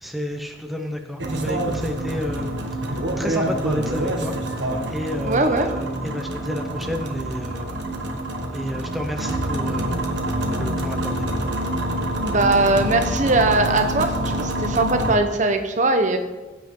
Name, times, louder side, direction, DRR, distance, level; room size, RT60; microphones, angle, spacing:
voice 1, 0.0-2.5 2.8-4.4 4.9-7.8 8.5-10.0 10.5-11.3, left 1 dB, ahead, 3 dB, 0.7 m, -31 dB
sound 1, 1.2-15.1, right 1 dB, 70° right, 1.5 m, -26 dB
voice 2, 5.2-5.7 12.2-16.2, right 2 dB, 40° right, 6 dB, 1.0 m, -20 dB
16.0 x 8.6 x 3.8 m, 1.2 s
head